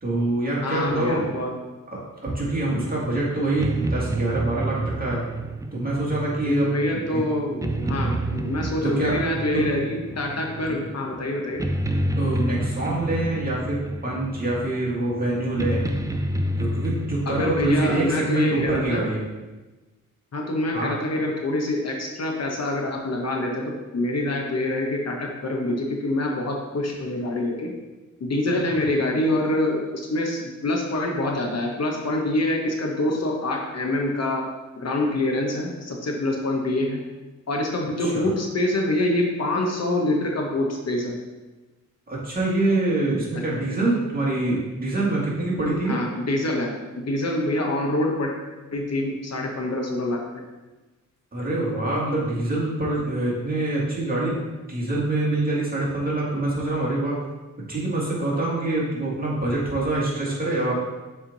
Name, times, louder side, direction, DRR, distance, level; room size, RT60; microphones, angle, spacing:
voice 1, 0.0-1.3 1.9-5.2 5.7-6.7 7.1-7.2 7.8-8.0 8.8-9.2 9.5-9.7 12.2-15.8 16.6-19.2 20.7-20.9 38.0-38.3 42.1-46.0 51.3-54.4 54.7-57.2 57.7-60.7, right 2 dB, 30° right, -6 dB, 1.9 m, -25 dB
voice 2, 0.6-1.6 6.4-11.7 17.3-19.0 20.3-27.7 28.2-34.5 34.8-37.0 37.5-41.2 43.4-43.5 45.8-48.3 48.7-50.4, left 1 dB, 55° left, 1 dB, 1.0 m, -26 dB
sound 1, 2.7-18.3, right 1 dB, 10° right, 0.3 m, -30 dB
7.2 x 3.5 x 4.0 m, 1.2 s
wide cardioid pair, 110°, 31 cm